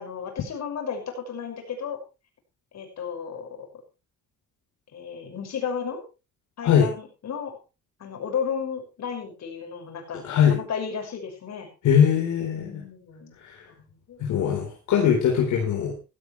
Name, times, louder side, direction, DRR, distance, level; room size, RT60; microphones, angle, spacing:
voice 1, 0.0-2.0 2.7-3.7 4.9-6.0 6.6-7.6 8.0-11.7 12.6-13.4 13.7-14.2, left 7 dB, 60° left, 4 dB, 6.0 m, -33 dB
voice 2, 10.2-10.6 11.8-12.8 13.4-13.6 14.2-15.9, left 8 dB, 80° left, 0 dB, 4.2 m, -21 dB
15.0 x 15.0 x 3.3 m, 0.30 s
cardioid pair, 90°, 30 cm